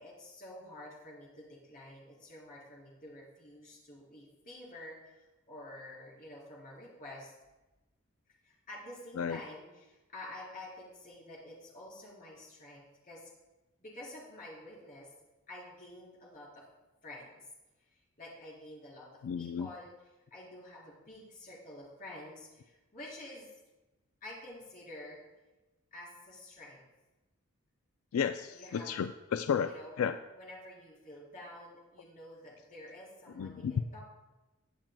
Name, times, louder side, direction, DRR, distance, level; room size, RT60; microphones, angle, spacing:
voice 1, 0.0-7.3 8.4-13.3 13.8-15.1 15.5-16.7 17.0-17.4 18.2-19.1 19.4-19.9 20.3-23.5 24.2-25.2 25.9-26.8 28.5-28.9 29.6-29.9 30.4-34.0, left 1 dB, 40° left, -5 dB, 4.0 m, -49 dB
voice 2, 19.2-19.7 28.1-30.2 33.4-33.8, left 7 dB, 90° left, 9 dB, 0.4 m, -33 dB
21.0 x 7.4 x 2.2 m, 1.1 s
head